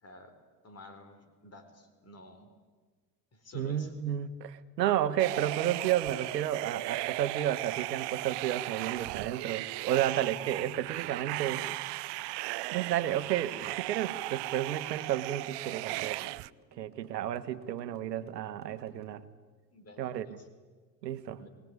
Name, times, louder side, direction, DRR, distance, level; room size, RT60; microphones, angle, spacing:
voice 1, 0.0-0.3 0.6-2.5 3.3-3.9 10.0-10.1 19.7-20.5 21.4-21.5, left 2 dB, 30° left, 8 dB, 4.4 m, -51 dB
voice 2, 3.5-11.7 12.7-16.2 16.8-19.2 20.0-20.3 21.0-21.4, right 11 dB, 90° right, 12 dB, 1.4 m, -32 dB
sound 1, 5.2-16.5, right 21 dB, 60° right, 0.7 m, -36 dB
sound 2, 13.7-19.0, right 4 dB, 25° right, 7.2 m, -59 dB
23.0 x 19.5 x 9.5 m, 1.4 s
hypercardioid pair, 75°, 48 cm